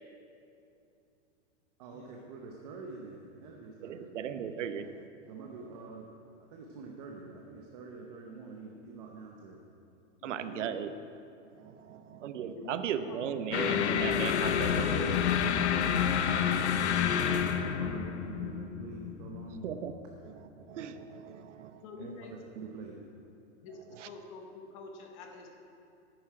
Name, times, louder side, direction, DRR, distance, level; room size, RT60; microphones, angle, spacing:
voice 1, 1.8-4.1 5.3-6.1 6.4-9.6 16.4-19.6 22.0-23.0, right 4 dB, 35° right, 0 dB, 0.8 m, -46 dB
voice 2, 3.8-5.1 10.2-10.9 11.6-15.2 16.4-16.5 19.6-19.9 20.2-21.8 24.0-24.1, right 8 dB, 80° right, 10 dB, 0.8 m, -37 dB
voice 3, 10.2-10.7 11.8-12.0 12.5-13.3 15.0-15.2 16.7-16.9 21.8-22.3 23.6-25.5, left 4 dB, 25° left, 3 dB, 0.8 m, -47 dB
sound 1, 13.5-20.0, left 8 dB, 65° left, 0.8 m, -29 dB
11.0 x 9.4 x 4.9 m, 2.6 s
supercardioid pair, 175°, 36 cm